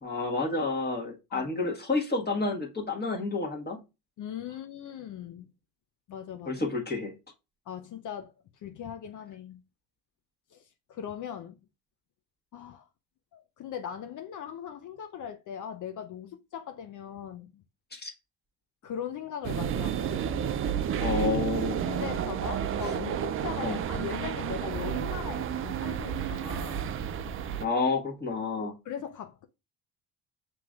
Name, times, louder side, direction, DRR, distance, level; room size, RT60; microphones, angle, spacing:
voice 1, 0.0-3.8 6.4-7.1 17.9-18.1 21.0-21.8 23.6-23.8 27.6-28.7, left 3 dB, 20° left, 1.3 m, -30 dB
voice 2, 4.2-5.5 6.1-6.6 7.7-8.3 8.6-9.6 10.5-10.6 10.9-11.6 12.5-12.9 13.3-17.6 18.8-20.2 21.9-26.8 28.6-29.5, left 9 dB, 40° left, 0.6 m, -39 dB
sound 1, 19.4-27.7, right 8 dB, 30° right, 0.3 m, -31 dB
5.9 x 3.0 x 2.4 m
hypercardioid pair, 70°, 49 cm